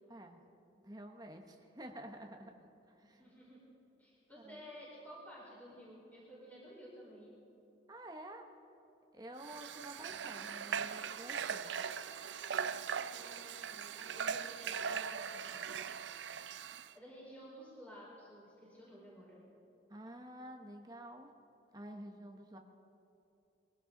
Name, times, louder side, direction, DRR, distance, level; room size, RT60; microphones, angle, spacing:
voice 1, 0.8-2.7 3.0-3.2 4.4-4.7 7.9-8.5 9.1-11.7 14.1-14.2 19.9-21.3 21.7-22.6, right 1 dB, 20° right, 3 dB, 1.0 m, -50 dB
voice 2, 3.0-3.6 4.0-7.3 13.1-15.7 16.9-19.4, equal, 10° left, -7 dB, 4.4 m, -53 dB
Water / Water tap faucet, 9.4-16.9, right 7 dB, 80° right, 0.5 m, -40 dB
22.5 x 16.5 x 3.9 m, 2.9 s
head